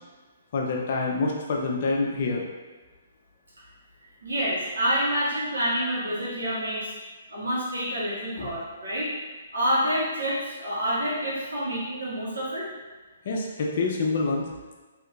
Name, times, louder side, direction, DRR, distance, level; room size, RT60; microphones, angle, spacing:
voice 1, 0.5-2.4 8.4-8.5 13.2-14.5, left 3 dB, 55° left, -1 dB, 0.5 m, -26 dB
voice 2, 4.2-6.9 7.3-9.1 9.5-12.7, equal, 85° right, -7 dB, 1.3 m, -27 dB
3.6 x 2.8 x 2.3 m, 1.3 s
hypercardioid pair, 140°, 0 cm